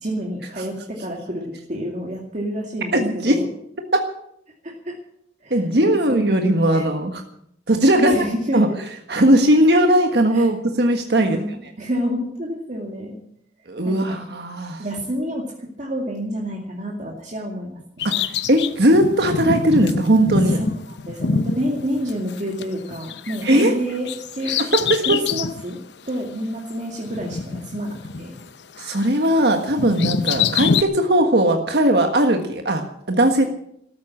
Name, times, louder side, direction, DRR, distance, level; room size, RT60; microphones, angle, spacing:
voice 1, 0.0-3.5 4.6-5.0 5.4-6.2 6.7-6.8 8.0-8.6 10.3-10.5 11.2-13.2 13.8-14.2 14.8-18.1 20.5-24.5 25.0-25.8 26.1-28.3, equal, 45° right, -1 dB, 2.3 m, -28 dB
voice 2, 2.9-3.4 3.9-4.0 5.5-7.2 7.7-8.1 8.5-8.7 9.1-11.4 13.7-14.8 18.0-20.6 23.4-23.7 24.5-25.2 28.8-33.4, right 1 dB, 65° right, 4 dB, 1.6 m, -18 dB
Bird vocalization bird call bird song, 18.0-22.6 22.9-25.6 26.1-26.2 27.1-28.5 28.8-30.8, left 5 dB, 75° left, 0.8 m, -25 dB
14.0 x 13.0 x 7.3 m, 0.73 s
head